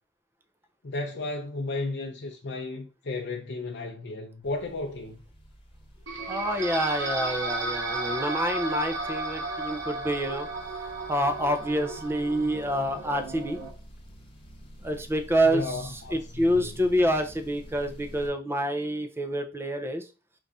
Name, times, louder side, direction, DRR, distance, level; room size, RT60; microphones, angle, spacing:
voice 1, 0.8-5.2 15.4-16.8, left 2 dB, 60° left, 0.6 m, -34 dB
sound 1, 4.4-18.3, equal, 30° left, 1.1 m, -49 dB
sound 2, 6.1-13.7, right 2 dB, 75° right, 1.2 m, -34 dB
voice 2, 6.3-10.5 11.1-13.6 14.8-20.1, equal, 10° right, 0.6 m, -27 dB
5.4 x 2.6 x 3.5 m
head